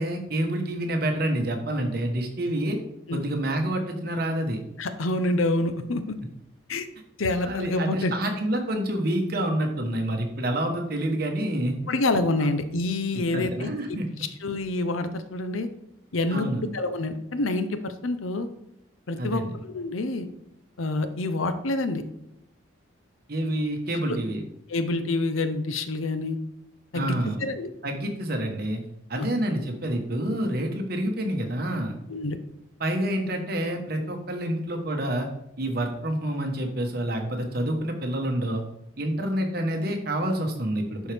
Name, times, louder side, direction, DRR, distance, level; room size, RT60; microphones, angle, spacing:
voice 1, 0.0-2.8 3.1-4.6 7.4-11.8 13.1-14.1 16.3-16.6 19.2-19.5 23.3-24.4 26.9-27.4 27.8-28.8 29.1-32.0 32.8-35.3 35.6-38.6 39.0-41.1, right 1 dB, 50° right, 3 dB, 1.2 m, -28 dB
voice 2, 4.8-6.0 6.7-6.9 7.2-8.1 11.9-14.0 14.4-15.7 16.1-16.5 16.7-18.5 19.1-20.3 20.8-22.0 24.1-24.2 24.7-26.4 26.9-27.2 27.4-27.7 29.2-29.3 32.1-32.4, left 2 dB, 85° left, 10 dB, 0.7 m, -27 dB
11.0 x 4.5 x 3.5 m, 0.79 s
head